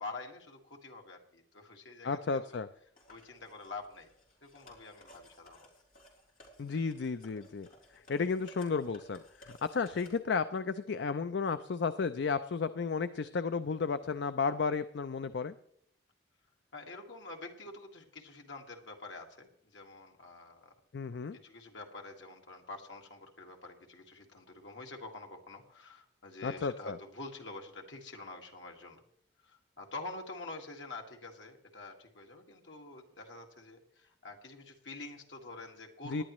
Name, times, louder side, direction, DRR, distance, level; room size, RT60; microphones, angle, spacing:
voice 1, 0.0-2.6 3.1-4.1 4.4-5.7 16.7-20.7 21.1-29.0 29.4-36.2, left 3 dB, 90° left, 2 dB, 1.9 m, -47 dB
voice 2, 2.0-2.7 6.6-7.7 8.1-15.5 20.9-21.4 26.4-27.0 36.1-36.2, left 5 dB, 75° left, 12 dB, 0.4 m, -33 dB
sound 1, 3.0-10.2, left 1 dB, 45° left, 3.3 m, -58 dB
19.0 x 11.0 x 3.1 m, 0.68 s
head